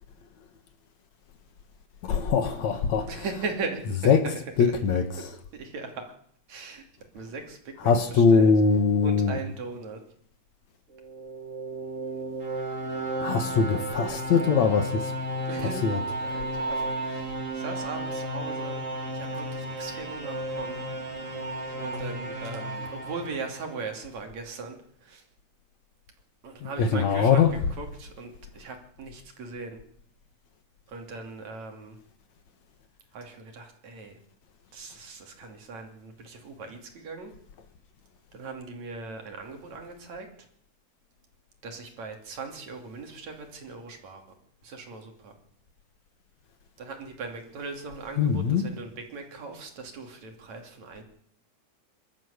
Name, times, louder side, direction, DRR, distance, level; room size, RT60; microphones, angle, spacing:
voice 1, 2.0-3.1 4.1-4.2 4.6-5.1 7.9-9.4 13.2-15.1 15.8-16.0 26.6-27.5 48.2-48.7, left 5 dB, 65° left, 2.7 m, -22 dB
voice 2, 3.1-5.2 5.5-6.1 6.5-6.9 7.1-8.5 9.0-10.0 15.3-15.9 16.2-18.8 19.1-20.8 21.7-25.2 26.4-27.4 27.8-29.8 30.9-32.0 33.1-34.2 34.7-37.3 38.3-40.3 41.6-44.2 44.6-45.3 46.8-51.0, right 4 dB, 60° right, 4.0 m, -39 dB
sound 1, 10.9-24.0, right 1 dB, 25° right, 3.0 m, -33 dB
25.5 x 13.0 x 8.3 m
omnidirectional pair, 3.6 m